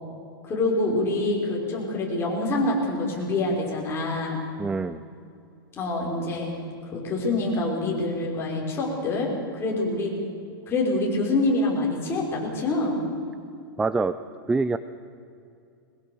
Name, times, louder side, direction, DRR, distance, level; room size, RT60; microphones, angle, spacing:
voice 1, 0.4-4.4 5.8-6.5 6.9-10.1 10.7-13.0, left 2 dB, 20° left, -2 dB, 5.2 m, -26 dB
voice 2, 4.6-5.0 13.8-14.2 14.5-14.8, right 3 dB, 5° right, 13 dB, 0.4 m, -24 dB
21.5 x 21.0 x 7.0 m, 2.5 s
supercardioid pair, 150°, 12 cm